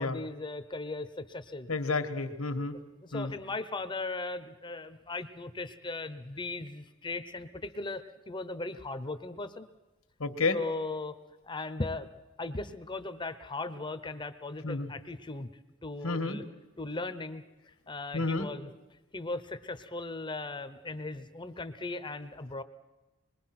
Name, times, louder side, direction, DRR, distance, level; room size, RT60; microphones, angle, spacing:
voice 1, 0.0-1.7 3.0-9.7 10.5-11.1 11.4-12.1 12.4-15.5 15.8-16.4 16.8-17.4 17.9-18.7 19.1-22.6, left 2 dB, 20° left, 11 dB, 0.8 m, -38 dB
voice 2, 1.7-2.8 3.1-3.3 10.2-10.6 14.6-14.9 16.0-16.4 18.1-18.5, left 3 dB, 80° left, 6 dB, 1.6 m, -31 dB
25.5 x 21.5 x 5.9 m, 1.1 s
head